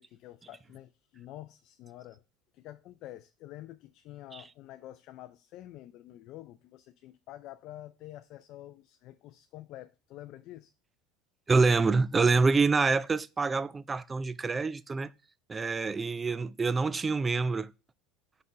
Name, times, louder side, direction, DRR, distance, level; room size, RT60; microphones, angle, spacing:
voice 1, 0.0-2.2 2.5-10.7, left 14 dB, 60° left, 0.4 m, -48 dB
voice 2, 11.5-15.1 15.5-17.7, right 4 dB, 20° right, 0.4 m, -26 dB
5.3 x 4.3 x 4.2 m
hypercardioid pair, 90°, 0 cm